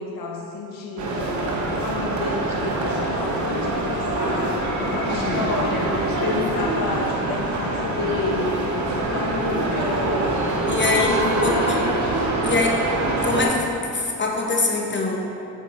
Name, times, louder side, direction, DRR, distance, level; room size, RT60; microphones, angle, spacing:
voice 1, 0.0-12.2, left 3 dB, 65° left, -1 dB, 1.4 m, -30 dB
sound 1, 1.0-13.4, right 2 dB, 50° right, 1.1 m, -24 dB
voice 2, 4.9-5.4 10.7-11.8 12.4-12.7 13.2-13.7 13.9-15.2, left 3 dB, 30° left, 0 dB, 1.0 m, -23 dB
7.8 x 4.6 x 4.4 m, 2.7 s
cardioid pair, 85°, 36 cm